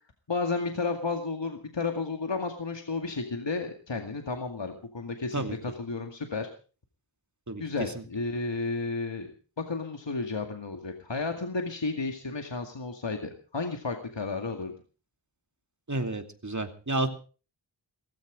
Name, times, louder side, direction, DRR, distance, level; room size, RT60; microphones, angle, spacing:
voice 1, 0.3-6.5 7.6-9.3 9.6-14.7, left 3 dB, 60° left, 5 dB, 2.2 m, -32 dB
voice 2, 15.9-17.1, right 2 dB, 35° right, 7 dB, 2.6 m, -30 dB
17.5 x 15.5 x 5.1 m, 0.38 s
wide cardioid pair, 45°, 50 cm